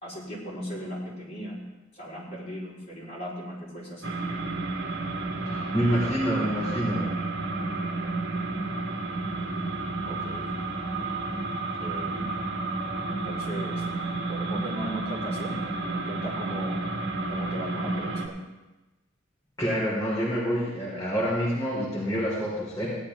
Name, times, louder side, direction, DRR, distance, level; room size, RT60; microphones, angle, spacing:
voice 1, 0.0-1.6 2.0-4.1 10.1-10.5 11.8-12.2 13.1-13.8 14.3-16.8 17.3-18.4, right 1 dB, 35° left, -7 dB, 4.5 m, -37 dB
sound 1, 4.0-18.3, right 3 dB, 60° right, 1.7 m, -31 dB
voice 2, 5.4-7.0 19.6-22.9, equal, 20° left, -9 dB, 3.4 m, -27 dB
17.0 x 10.5 x 3.7 m, 1.1 s
head